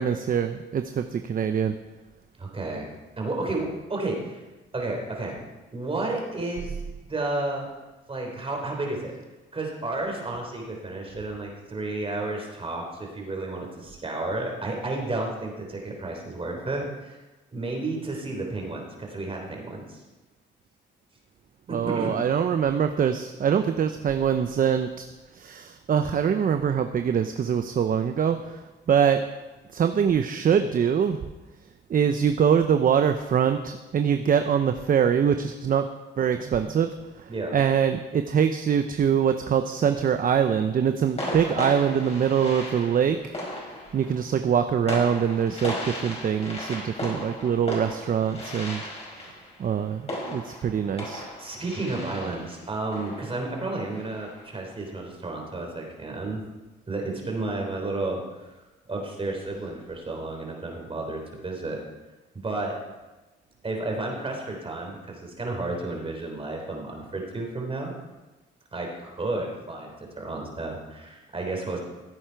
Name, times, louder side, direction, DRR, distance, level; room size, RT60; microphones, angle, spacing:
voice 1, 0.0-1.7 21.7-25.0 25.3-28.6 28.9-29.2 29.7-31.2 31.9-35.9 36.2-36.9 37.5-43.3 43.9-48.8 49.6-51.2, right 7 dB, 45° right, 8 dB, 0.7 m, -23 dB
voice 2, 2.4-2.9 3.2-4.4 4.7-5.4 5.7-6.8 7.1-7.7 8.1-9.1 9.5-17.2 17.5-20.0 21.7-22.1 37.3-37.6 51.4-56.4 56.9-58.5 58.9-61.8 62.3-62.8 63.6-67.9 68.7-71.8, right 2 dB, 30° right, 1 dB, 3.5 m, -32 dB
sound 1, 39.7-40.3 41.2-54.6, left 1 dB, 30° left, 5.2 m, -36 dB
15.5 x 8.6 x 4.6 m, 1.1 s
cardioid pair, 90°, 20 cm